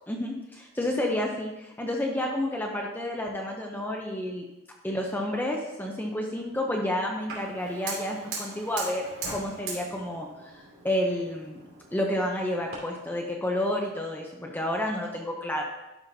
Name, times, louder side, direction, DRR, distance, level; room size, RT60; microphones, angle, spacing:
voice 1, 0.1-4.4 4.8-11.6 11.9-15.6, left 1 dB, 10° left, 0 dB, 0.6 m, -30 dB
Fire, 7.3-12.8, right 4 dB, 65° right, 2.7 m, -40 dB
11.5 x 5.6 x 2.7 m, 0.99 s
head